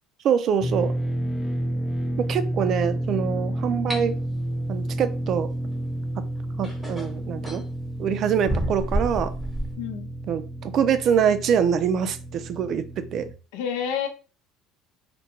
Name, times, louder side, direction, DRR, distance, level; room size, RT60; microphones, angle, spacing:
voice 1, 0.2-0.9 2.2-4.2 4.7-5.5 6.6-7.6 8.0-9.3 10.3-13.3, right 8 dB, 55° right, 11 dB, 0.3 m, -24 dB
sound 1, 0.6-13.3, right 1 dB, 15° left, 0.4 m, -30 dB
sound 2, 3.9-4.0 5.9-6.0 6.6-7.7 8.5-9.8, right 1 dB, 5° right, 1.0 m, -29 dB
voice 2, 9.8-10.1 13.5-14.1, left 8 dB, 80° left, 5 dB, 0.5 m, -28 dB
2.3 x 2.2 x 2.9 m, 0.35 s
hypercardioid pair, 80°, 0 cm